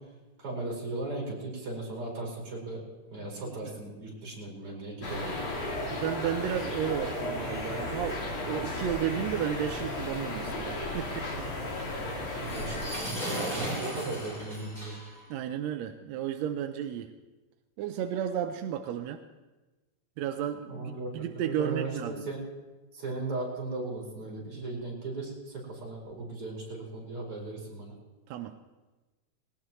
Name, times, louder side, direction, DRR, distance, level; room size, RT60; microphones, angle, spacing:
voice 1, 0.4-2.8 3.1-5.5 12.4-14.9 20.7-22.4 22.9-27.9, right 2 dB, 45° right, -3 dB, 5.7 m, -37 dB
sound 1, 5.0-13.0, left 2 dB, 45° left, 2.9 m, -34 dB
voice 2, 5.9-11.3 11.6-11.8 15.3-17.1 17.8-19.2 20.2-22.2 28.3-28.5, right 10 dB, 75° right, 6 dB, 1.6 m, -33 dB
sound 2, 12.4-15.3, equal, 15° left, 3.8 m, -36 dB
20.0 x 18.5 x 3.1 m, 1.2 s
omnidirectional pair, 3.6 m